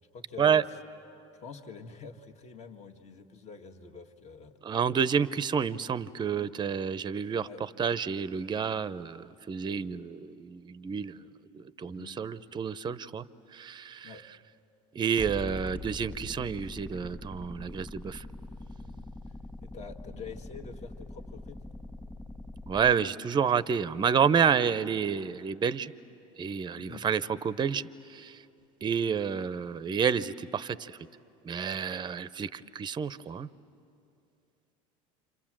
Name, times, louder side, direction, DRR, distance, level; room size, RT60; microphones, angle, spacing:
voice 1, 0.1-0.8 1.3-4.6 7.4-7.6 11.8-12.2 14.0-14.3 18.8-19.3 19.6-21.6 26.7-27.1, left 5 dB, 40° left, 5 dB, 1.6 m, -46 dB
voice 2, 4.6-7.5 7.8-11.2 11.5-13.2 13.5-14.1 14.9-18.2 22.7-25.9 26.4-27.8 28.1-28.4 28.8-31.0 31.4-33.5, right 7 dB, 25° right, 16 dB, 0.7 m, -29 dB
sound 1, 15.2-22.9, left 2 dB, 10° left, 1.6 m, -43 dB
28.5 x 27.0 x 7.5 m, 2.7 s
supercardioid pair, 95°, 17 cm